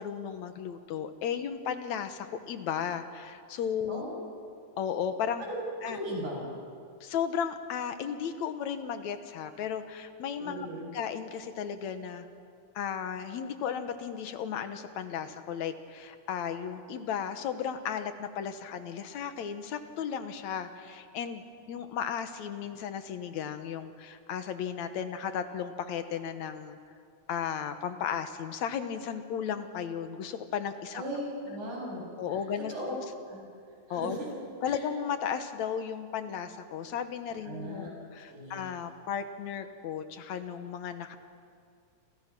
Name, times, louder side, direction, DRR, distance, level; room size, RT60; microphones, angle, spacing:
voice 1, 0.0-4.0 4.8-5.4 5.8-6.0 7.0-10.7 10.9-12.3 12.8-26.8 27.3-31.0 32.2-33.0 33.9-34.2 34.6-41.2, left 8 dB, 70° left, 9 dB, 2.4 m, -35 dB
voice 2, 5.4-6.5 10.4-10.9 30.9-32.0 32.3-32.9 33.3-33.4 33.9-34.3 34.6-34.8 37.4-37.9 38.3-38.7, right 1 dB, 80° right, -2 dB, 8.8 m, -38 dB
28.0 x 28.0 x 6.1 m, 2.3 s
omnidirectional pair, 3.4 m